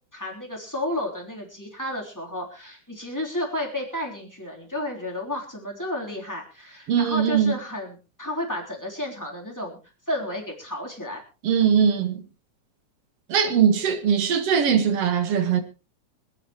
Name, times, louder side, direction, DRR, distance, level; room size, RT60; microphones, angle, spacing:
voice 1, 0.1-9.8 10.1-11.2, left 1 dB, 5° left, 3.2 m, -32 dB
voice 2, 6.9-7.5 11.4-12.2 13.3-15.6, right 7 dB, 55° right, 2.4 m, -21 dB
26.0 x 9.7 x 3.1 m
omnidirectional pair, 3.6 m